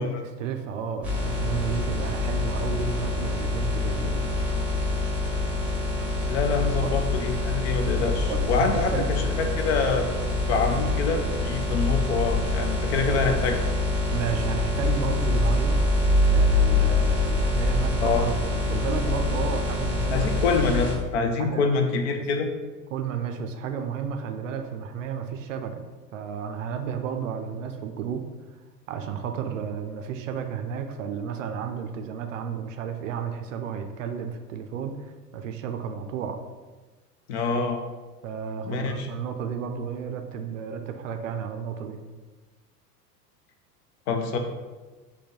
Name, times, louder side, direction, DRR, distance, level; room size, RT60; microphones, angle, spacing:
voice 1, 0.0-4.2 6.8-7.0 8.3-9.2 14.1-15.8 16.2-20.3 21.4-21.7 22.9-25.9 26.1-28.3 28.9-36.4 38.2-42.0, right 7 dB, 55° right, 6 dB, 0.5 m, -32 dB
sound 1, 1.0-20.9, left 2 dB, 5° right, 0.9 m, -25 dB
voice 2, 6.3-10.1 10.5-13.6 18.0-18.3 20.1-22.5 37.3-37.8 38.6-39.1 44.1-44.4, left 4 dB, 45° left, 5 dB, 0.5 m, -26 dB
3.6 x 2.2 x 4.4 m, 1.3 s
figure-of-eight pair, 85°, 48 cm